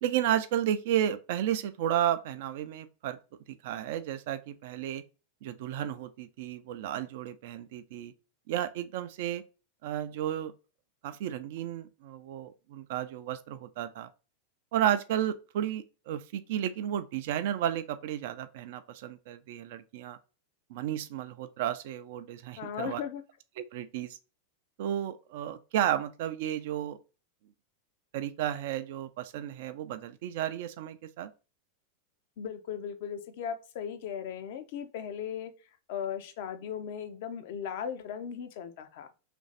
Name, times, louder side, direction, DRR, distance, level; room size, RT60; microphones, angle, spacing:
voice 1, 0.0-3.2 3.5-5.0 5.4-8.1 8.5-9.4 9.8-10.5 11.0-14.1 14.7-20.2 20.7-23.0 23.6-24.2 24.8-27.0 28.1-31.3, right 11 dB, 50° right, 0.4 m, -32 dB
voice 2, 22.6-23.2 32.4-35.5 35.9-39.1, left 8 dB, 50° left, 0.5 m, -37 dB
3.1 x 2.6 x 3.8 m
figure-of-eight pair, 90°, 0 cm